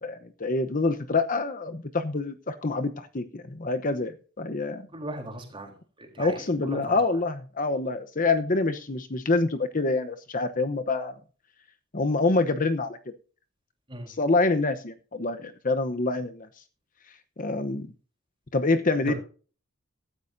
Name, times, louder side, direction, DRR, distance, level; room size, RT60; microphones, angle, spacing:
voice 1, 0.0-4.9 6.2-11.2 11.9-13.0 14.1-16.5 17.4-17.9 18.5-19.1, left 3 dB, 40° left, 9 dB, 0.9 m, -26 dB
voice 2, 4.9-5.7 6.0-7.0 13.9-14.1 19.1-19.2, right 1 dB, 25° right, 3 dB, 3.7 m, -37 dB
15.5 x 13.0 x 2.7 m, 0.38 s
head